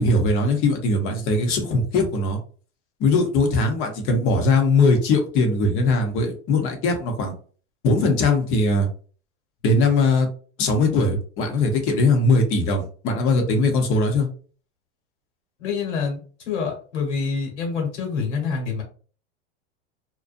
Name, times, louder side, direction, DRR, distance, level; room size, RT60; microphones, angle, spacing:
voice 1, 0.0-2.4 3.0-7.3 7.8-8.9 9.6-10.3 10.6-14.3, left 2 dB, 40° left, 4 dB, 0.8 m, -20 dB
voice 2, 15.6-16.2 16.5-18.8, left 5 dB, 80° left, 1 dB, 1.4 m, -26 dB
2.5 x 2.2 x 2.5 m, 0.41 s
supercardioid pair, 135°, 35 cm